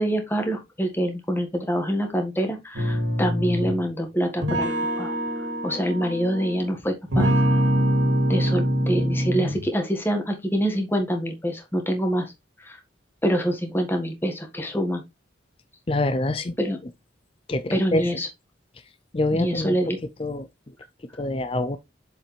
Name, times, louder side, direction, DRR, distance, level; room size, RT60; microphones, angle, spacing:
voice 1, 0.0-5.1 5.6-7.3 8.3-12.3 12.7-12.8 13.2-15.0 16.6-16.8 17.7-18.3 19.3-20.0, equal, 10° left, 1.6 m, -25 dB
sound 1, 2.8-3.8 4.4-6.7 7.1-9.7, equal, 85° right, 2.2 m, -24 dB
voice 2, 15.9-16.5 17.5-18.2 19.1-19.9 20.2-20.5 21.2-21.8, left 2 dB, 30° left, 0.5 m, -25 dB
7.5 x 4.9 x 3.3 m
head